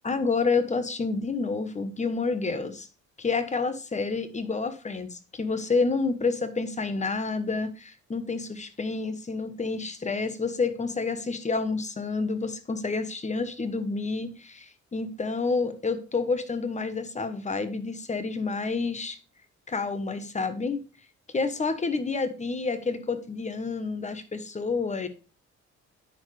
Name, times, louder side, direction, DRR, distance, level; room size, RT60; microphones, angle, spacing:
voice 1, 0.0-2.9 3.2-19.2 19.7-20.8 21.3-25.1, left 4 dB, 25° left, 10 dB, 1.0 m, -29 dB
10.0 x 4.5 x 3.3 m, 0.34 s
cardioid pair, 90°, 30 cm